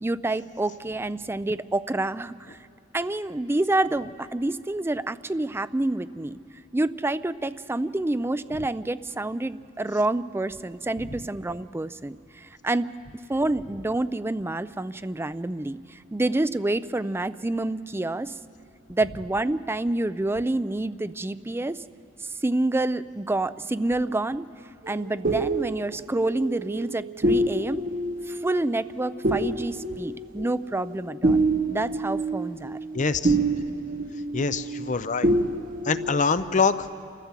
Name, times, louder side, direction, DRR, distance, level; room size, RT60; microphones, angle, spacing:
voice 1, 0.0-2.6 2.9-6.4 6.7-12.9 13.3-18.3 18.9-21.8 22.4-24.4 24.9-27.8 28.3-31.4 31.7-32.8, right 2 dB, 10° right, 14 dB, 0.4 m, -28 dB
sound 1, 24.8-35.0 35.2-36.1, right 2 dB, 45° right, 1.1 m, -27 dB
voice 2, 32.9-33.3 34.3-35.3 35.9-36.8, left 5 dB, 40° left, 12 dB, 0.6 m, -24 dB
28.0 x 14.0 x 7.4 m, 2.5 s
head